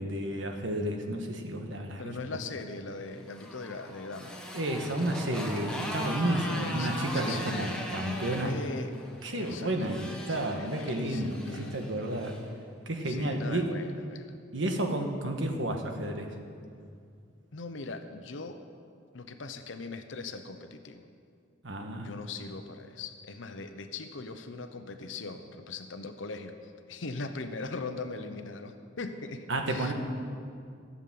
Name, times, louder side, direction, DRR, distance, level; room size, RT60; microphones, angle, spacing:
voice 1, 0.0-2.1 4.5-8.5 9.2-12.4 12.9-13.8 14.5-16.3 21.6-22.1 29.5-29.9, right 1 dB, 80° right, 4 dB, 1.4 m, -31 dB
voice 2, 2.0-4.4 6.3-8.9 9.3-11.9 13.0-14.3 17.5-18.6 19.1-21.1 22.0-29.9, left 3 dB, 90° left, 8 dB, 0.8 m, -40 dB
Motorcycle, 3.0-12.4, equal, 5° left, 1.4 m, -39 dB
14.5 x 7.2 x 7.7 m, 2.3 s
head